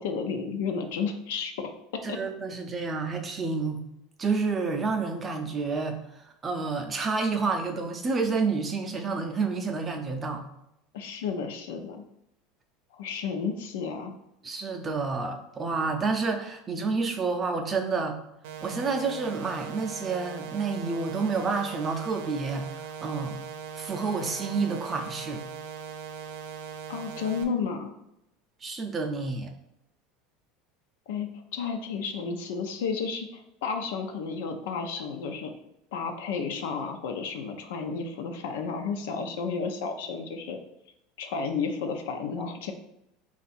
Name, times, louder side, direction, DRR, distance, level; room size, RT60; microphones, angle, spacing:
voice 1, 0.0-1.7 2.1-2.2 10.9-12.0 13.0-14.1 26.9-27.9 31.1-35.5 35.9-40.6 41.2-42.7, left 5 dB, 90° left, 5 dB, 0.6 m, -32 dB
voice 2, 2.0-3.8 4.2-6.0 6.4-10.4 14.4-18.2 18.6-22.7 23.0-23.4 23.8-25.4 28.6-29.5, right 4 dB, 15° right, 4 dB, 0.4 m, -29 dB
sound 1, 18.4-27.4, right 7 dB, 85° right, 0.6 m, -40 dB
4.5 x 2.4 x 4.1 m, 0.83 s
cardioid pair, 170°, 0 cm